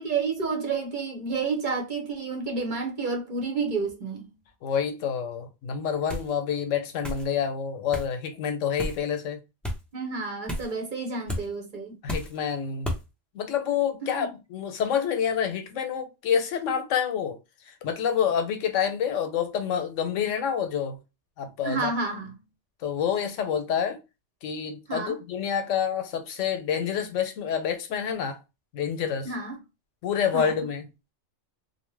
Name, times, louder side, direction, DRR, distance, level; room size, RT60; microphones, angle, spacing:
voice 1, 0.0-4.3 9.9-12.0 14.0-14.3 21.6-22.3 24.9-25.2 29.2-29.6 30.3-30.5, right 4 dB, 45° right, 0.8 m, -30 dB
voice 2, 4.6-9.4 12.0-12.9 13.3-17.4 17.7-21.0 21.4-21.9 22.8-24.0 24.4-28.4 28.7-29.3 30.0-30.8, left 8 dB, 85° left, 1.0 m, -28 dB
sound 1, 6.1-6.3 7.0-7.3 7.9-8.1 8.8-9.0 9.6-9.8 10.5-10.7 11.3-11.5 12.1-12.4 12.8-13.0, equal, ahead, 0.3 m, -32 dB
2.8 x 2.1 x 3.2 m
omnidirectional pair, 1.3 m